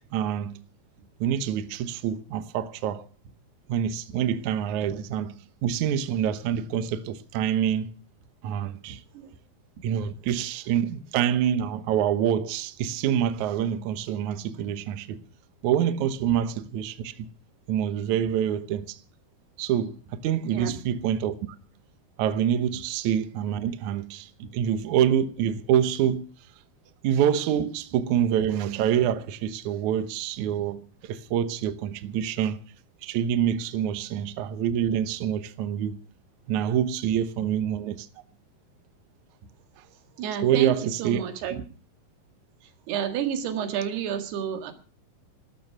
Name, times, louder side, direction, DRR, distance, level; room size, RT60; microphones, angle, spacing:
voice 1, 0.1-0.6 1.2-3.0 3.7-7.9 8.4-9.0 9.8-15.2 15.6-17.3 17.7-19.0 19.6-21.4 22.2-26.3 27.0-32.6 33.0-36.0 36.5-38.1 40.4-41.3, right 9 dB, 70° right, 2.0 m, -26 dB
voice 2, 8.9-9.3 20.4-20.7 24.4-24.5 40.2-41.6 42.9-44.7, right 8 dB, 85° right, 3.9 m, -30 dB
15.5 x 13.0 x 5.9 m
omnidirectional pair, 4.5 m